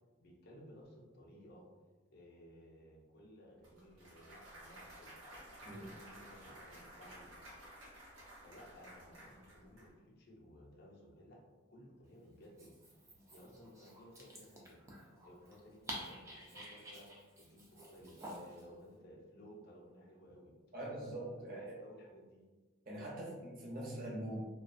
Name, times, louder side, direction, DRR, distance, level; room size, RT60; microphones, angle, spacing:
voice 1, 0.2-1.6 2.1-7.3 8.4-11.4 11.7-13.0 13.3-14.8 15.2-17.1 17.4-20.5 21.4-22.4, equal, 50° left, -1 dB, 0.5 m, -58 dB
Clapping / Cheering / Applause, 3.6-9.9, right 1 dB, 75° right, 0.7 m, -54 dB
Dog, 12.4-18.7, equal, 15° right, 0.3 m, -51 dB
voice 2, 20.7-21.7 22.9-24.4, right 1 dB, 45° right, -4 dB, 0.6 m, -43 dB
2.3 x 2.2 x 2.4 m, 1.3 s
head